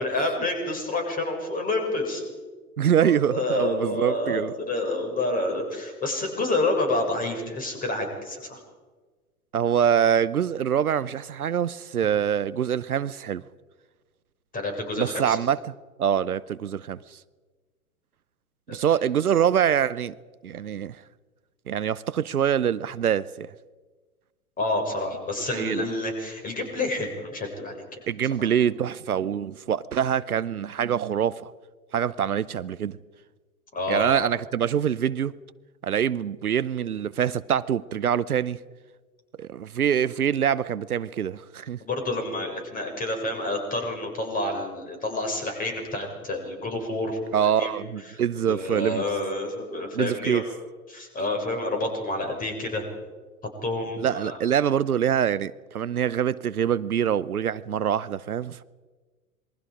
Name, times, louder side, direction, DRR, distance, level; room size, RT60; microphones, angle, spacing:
voice 1, 0.0-2.2 3.0-8.6 14.5-15.4 18.7-18.8 24.6-27.7 33.7-34.1 41.8-47.7 48.5-50.4 50.9-52.9 53.6-54.4, left 2 dB, 20° left, 6.3 m, -28 dB
voice 2, 2.8-4.5 9.5-13.4 15.0-15.7 16.0-17.2 18.7-20.2 20.4-21.0 21.7-23.5 25.5-25.9 28.1-31.5 31.9-33.0 33.9-35.3 35.8-38.6 39.4-41.8 47.3-49.0 49.9-50.4 54.0-58.6, right 9 dB, 75° right, 0.8 m, -25 dB
27.0 x 22.0 x 5.1 m
figure-of-eight pair, 100°, 44 cm